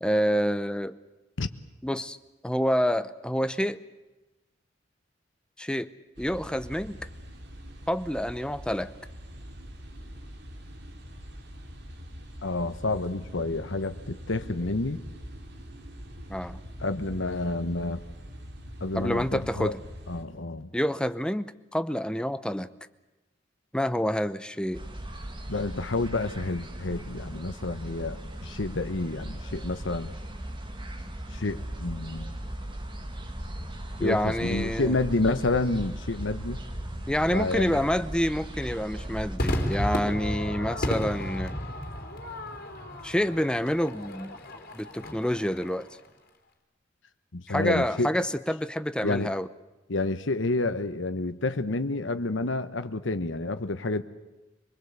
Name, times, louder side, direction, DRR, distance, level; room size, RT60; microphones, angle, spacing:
voice 1, 0.0-0.9 1.8-2.2 2.4-3.8 5.6-5.9 6.2-7.0 7.9-8.9 16.3-16.6 18.9-19.8 20.7-22.7 23.7-24.8 34.0-35.0 37.1-41.6 43.0-44.3 44.7-45.9 47.5-49.5, equal, 5° left, 13 dB, 0.7 m, -28 dB
sound 1, 6.2-20.2, equal, 60° right, 3.4 m, -43 dB
voice 2, 12.4-15.0 16.8-18.0 18.8-19.7 20.1-20.7 25.5-30.1 31.3-32.3 34.0-36.6 37.3-37.8 47.3-48.1 49.0-49.3 49.9-54.0, left 2 dB, 90° left, 10 dB, 1.1 m, -29 dB
sound 2, 24.7-39.4, right 1 dB, 25° right, 2.4 m, -38 dB
Crowd / Fireworks, 39.4-45.9, equal, 55° left, 3.3 m, -33 dB
25.5 x 20.5 x 8.2 m, 1.1 s
head